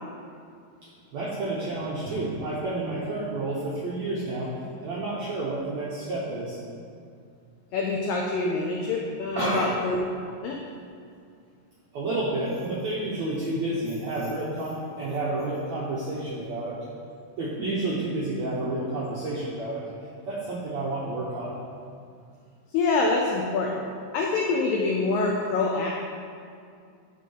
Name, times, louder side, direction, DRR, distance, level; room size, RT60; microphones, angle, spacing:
voice 1, 0.8-4.5 4.8-6.6 9.3-9.7 11.9-16.7 17.4-19.8 20.3-21.6, right 2 dB, 85° right, -6 dB, 1.5 m, -30 dB
voice 2, 7.7-10.0 10.4-10.6 22.7-23.8 24.1-26.0, left 3 dB, 80° left, -1 dB, 2.0 m, -25 dB
11.0 x 3.8 x 5.5 m, 2.3 s
omnidirectional pair, 4.7 m